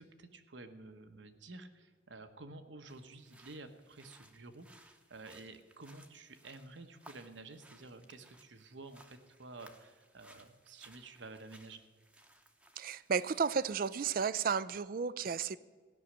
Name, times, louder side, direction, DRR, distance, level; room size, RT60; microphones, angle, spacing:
voice 1, 0.0-11.8, right 3 dB, 80° right, 7 dB, 1.2 m, -51 dB
sound 1, 2.9-14.3, right 1 dB, 5° right, 0.9 m, -62 dB
voice 2, 12.8-15.6, right 6 dB, 50° right, 18 dB, 0.4 m, -33 dB
16.0 x 6.4 x 10.0 m, 1.5 s
head